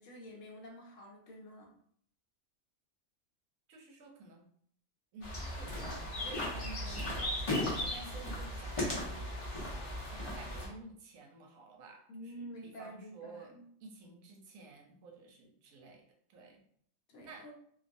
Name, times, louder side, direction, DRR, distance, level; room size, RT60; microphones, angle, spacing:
voice 1, 0.0-1.7 12.1-13.7 17.1-17.5, equal, 70° left, 0 dB, 1.0 m, -49 dB
voice 2, 3.7-4.4 5.1-9.3 9.7-13.5 13.8-16.0 16.3-16.6 17.2-17.5, right 3 dB, 80° right, 1 dB, 1.0 m, -52 dB
sound 1, 5.2-10.7, left 1 dB, 35° left, 0.5 m, -36 dB
2.5 x 2.3 x 2.5 m, 0.63 s
omnidirectional pair, 1.4 m